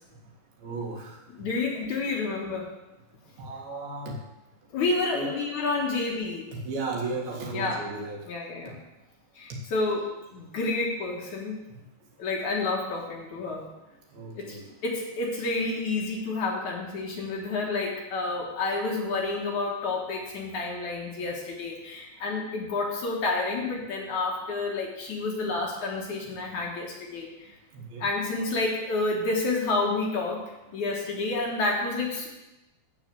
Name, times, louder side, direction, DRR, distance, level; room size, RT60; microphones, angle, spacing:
voice 1, 0.6-1.2 3.4-4.1 5.1-5.3 6.5-8.2 14.1-14.7 27.7-28.1, right 3 dB, 70° right, 0 dB, 3.6 m, -34 dB
voice 2, 1.3-2.7 4.7-6.5 7.5-7.9 8.3-8.8 9.4-11.6 12.2-13.7 14.4-27.5 28.0-32.3, left 3 dB, 55° left, -2 dB, 2.6 m, -29 dB
14.0 x 4.7 x 7.7 m, 0.99 s
omnidirectional pair, 4.6 m